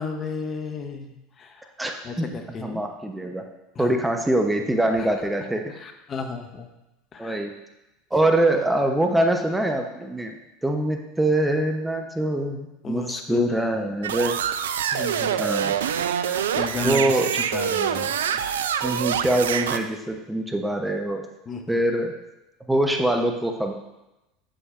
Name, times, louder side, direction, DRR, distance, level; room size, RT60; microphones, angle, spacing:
voice 1, 0.0-1.7 2.0-2.8 3.7-3.9 5.0-5.1 5.8-6.7 7.1-7.4 12.8-13.7 14.9-15.5 16.2-18.2 21.5-21.8, left 4 dB, 35° left, 5 dB, 0.9 m, -34 dB
voice 2, 1.8-3.4 3.8-5.6 7.2-7.5 8.1-14.4 15.4-15.8 16.8-17.3 18.3-18.4 18.8-21.2 21.7-22.1 22.7-23.7, right 1 dB, 5° right, 4 dB, 0.8 m, -24 dB
sound 1, 14.0-19.8, right 9 dB, 75° right, 0.3 m, -25 dB
8.1 x 7.6 x 2.5 m, 0.96 s
hypercardioid pair, 75°, 0 cm